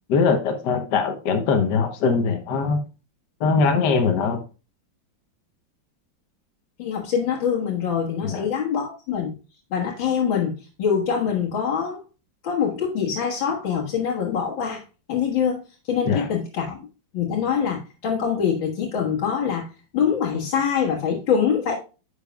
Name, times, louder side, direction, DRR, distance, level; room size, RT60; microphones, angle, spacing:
voice 1, 0.1-2.8 3.4-4.4 8.2-8.5 16.0-16.3, left 5 dB, 65° left, 1.6 m, -21 dB
voice 2, 6.8-9.4 9.7-12.0 12.4-14.8 15.1-16.8 17.1-21.7, left 7 dB, 80° left, 2.3 m, -24 dB
10.0 x 6.7 x 2.3 m
omnidirectional pair, 2.1 m